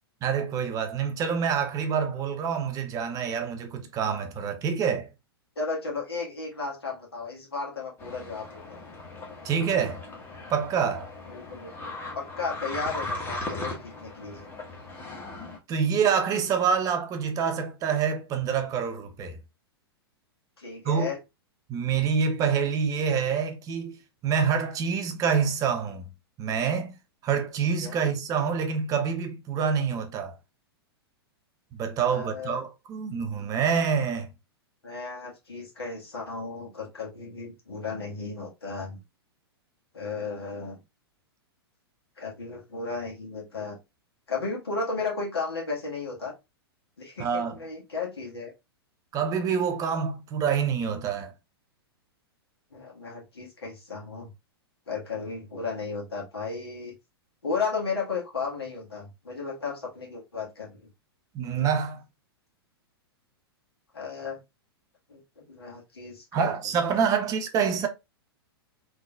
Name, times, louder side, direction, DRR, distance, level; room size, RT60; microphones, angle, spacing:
voice 1, 0.2-5.1 9.4-10.0 10.5-11.1 15.7-19.4 20.8-21.1 21.7-26.0 26.4-27.0 27.2-30.3 31.7-34.3 47.2-47.6 49.1-51.3 61.3-62.0 66.3-67.9, right 6 dB, 25° right, 0.7 m, -26 dB
voice 2, 5.5-8.8 11.3-11.7 12.1-14.5 20.6-21.2 27.6-27.9 32.0-32.6 34.8-39.0 39.9-40.8 42.2-43.8 44.3-46.3 47.0-48.5 52.7-54.3 54.9-56.9 57.4-60.9 63.9-64.4 65.1-66.5 66.8-67.0, left 4 dB, 75° left, 1.5 m, -34 dB
sound 1, 8.0-15.6, left 2 dB, 15° left, 1.2 m, -38 dB
3.7 x 2.9 x 2.3 m
figure-of-eight pair, 105°, 13 cm